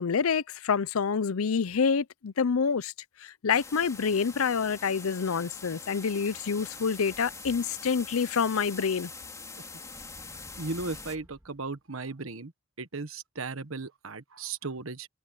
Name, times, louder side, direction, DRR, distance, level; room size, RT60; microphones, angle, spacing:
voice 1, 0.0-2.9 3.4-9.1, left 6 dB, 85° left, 0.6 m, -27 dB
Walking behind a waterfall, 3.5-11.2, left 4 dB, 15° left, 3.7 m, -44 dB
sound 1, 7.1-8.1 8.7-8.8 9.3-11.8, equal, 10° right, 1.9 m, -55 dB
voice 2, 10.6-12.5 12.8-15.1, right 3 dB, 75° right, 1.4 m, -36 dB
head